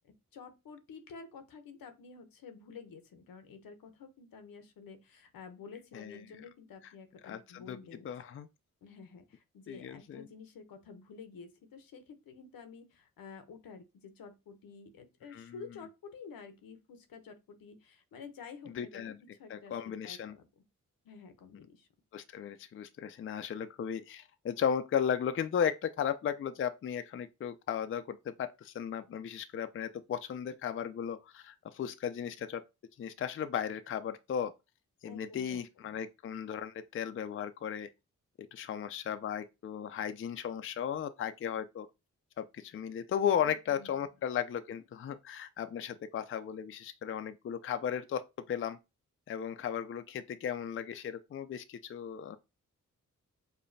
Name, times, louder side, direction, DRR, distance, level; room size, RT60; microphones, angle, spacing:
voice 1, 0.0-8.1 8.8-19.1 19.4-20.6 21.0-21.9 35.0-36.0 43.4-43.9, left 5 dB, 75° left, 0.8 m, -50 dB
voice 2, 7.2-7.8 8.0-8.5 9.7-10.2 15.3-15.5 18.7-19.2 19.5-20.3 22.1-32.6 33.0-34.5 35.0-37.9 38.5-41.9 42.4-48.8 49.3-52.4, left 8 dB, 40° left, 0.4 m, -35 dB
5.0 x 2.2 x 2.6 m
supercardioid pair, 45°, 34 cm